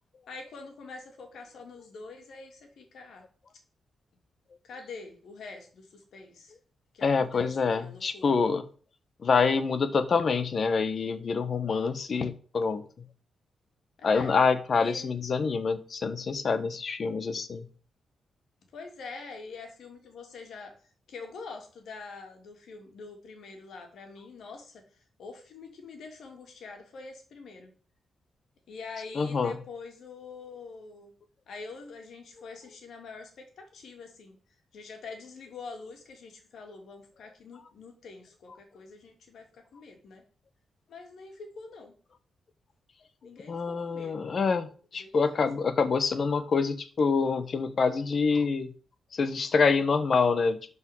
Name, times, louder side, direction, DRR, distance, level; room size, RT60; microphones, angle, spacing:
voice 1, 0.3-3.3 4.6-6.5 6.9-7.5 7.8-8.3 14.0-14.3 14.8-15.1 18.7-20.8 21.1-24.8 25.2-27.7 28.7-31.1 31.5-34.4 34.7-40.2 40.9-41.9 43.2-44.1 45.0-45.4, left 4 dB, 70° left, 4 dB, 3.0 m, -45 dB
voice 2, 7.0-8.6 9.2-12.8 14.0-17.7 29.1-29.6 43.5-48.7 49.1-50.7, left 5 dB, 45° left, 12 dB, 1.2 m, -26 dB
12.5 x 5.4 x 5.4 m, 0.41 s
wide cardioid pair, 130°, 0 cm